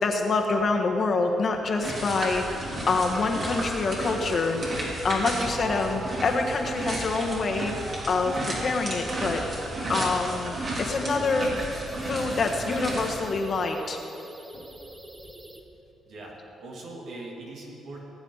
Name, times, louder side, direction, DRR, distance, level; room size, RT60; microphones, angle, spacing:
voice 1, 0.0-2.5 2.9-4.7 5.0-9.4 9.9-11.5 12.1-14.0 14.5-14.6, left 3 dB, 50° left, 2 dB, 1.5 m, -26 dB
sound 1, 1.8-13.2, right 1 dB, 45° right, 3.3 m, -33 dB
sound 2, 5.6-15.6, right 1 dB, 15° right, 1.1 m, -42 dB
voice 2, 16.0-18.0, right 2 dB, 70° right, -3 dB, 3.0 m, -41 dB
19.5 x 8.9 x 4.1 m, 2.8 s
cardioid pair, 90°, 0 cm